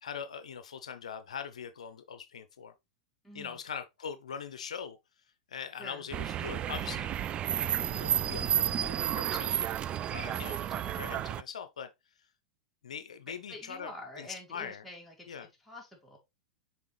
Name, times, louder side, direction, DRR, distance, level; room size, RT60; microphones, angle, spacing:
voice 1, 0.0-2.7 3.3-5.0 5.5-7.1 7.9-9.5 10.1-11.9 12.8-13.9 14.2-14.8 15.3-15.5, left 7 dB, 80° left, 0.6 m, -42 dB
voice 2, 3.2-3.6 5.8-6.1 13.3-16.2, left 1 dB, 5° left, 3.5 m, -47 dB
sound 1, 6.1-11.4, right 10 dB, 30° right, 0.4 m, -31 dB
6.8 x 4.6 x 3.2 m
hypercardioid pair, 100°, 4 cm